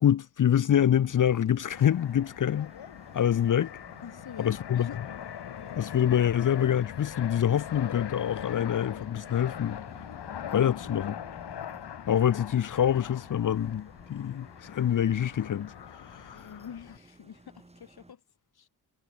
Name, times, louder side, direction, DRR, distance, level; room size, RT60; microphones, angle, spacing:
voice 1, 0.0-2.7 3.1-3.7 4.4-4.9 5.8-9.8 10.5-11.1 12.1-15.7 16.2-16.5, left 9 dB, 50° left, 0.7 m, -25 dB
sound 1, 0.8-18.1, right 2 dB, 15° right, 4.7 m, -55 dB
Fixed-wing aircraft airplane, 1.7-17.0, left 9 dB, 90° left, 3.9 m, -42 dB
voice 2, 4.0-5.0 10.6-10.8 16.3-18.2 18.5-18.7, left 8 dB, 70° left, 4.8 m, -46 dB
wide cardioid pair, 120°, 39 cm